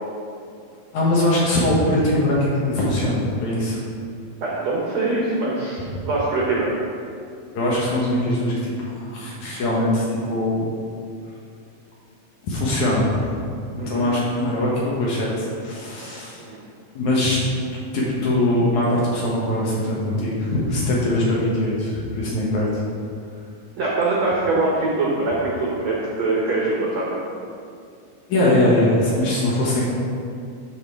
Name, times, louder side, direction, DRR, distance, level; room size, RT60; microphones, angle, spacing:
voice 1, 0.9-3.8 7.5-10.6 12.4-13.3 13.7-16.4 17.0-17.4 17.9-22.8 28.3-29.8, left 1 dB, 65° left, -5 dB, 2.1 m, -21 dB
voice 2, 4.4-6.7 13.8-14.0 16.4-16.6 23.8-27.2, right 2 dB, 75° right, -5 dB, 1.6 m, -23 dB
12.0 x 5.0 x 3.6 m, 2.4 s
omnidirectional pair, 4.4 m